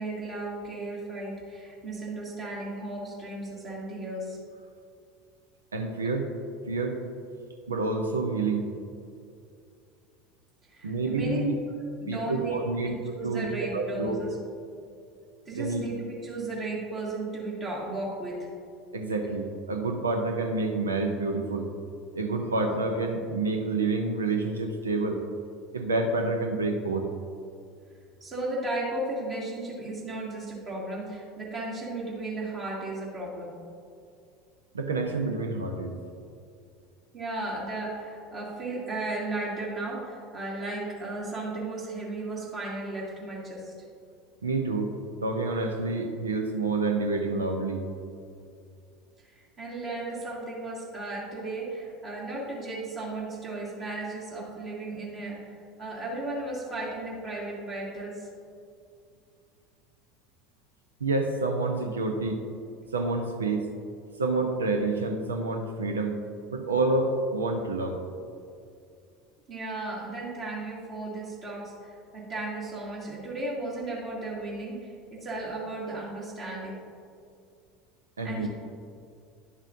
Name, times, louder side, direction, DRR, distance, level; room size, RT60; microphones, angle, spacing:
voice 1, 0.0-4.4 10.7-11.4 12.0-14.4 15.5-18.5 28.2-33.5 37.1-43.7 49.3-55.5 55.8-58.3 69.5-76.8 78.2-78.5, right 2 dB, 35° right, -6 dB, 1.8 m, -35 dB
voice 2, 5.7-6.3 6.7-7.0 7.7-8.7 10.8-11.5 12.1-14.2 15.5-15.9 18.9-21.7 22.1-25.2 25.7-27.1 34.7-36.0 44.4-44.9 45.2-47.8 61.0-62.5 62.9-63.7 64.2-66.2 66.5-68.0 78.2-78.5, right 3 dB, 75° right, 4 dB, 0.6 m, -28 dB
11.0 x 6.2 x 2.6 m, 2.4 s
figure-of-eight pair, 70°, 0 cm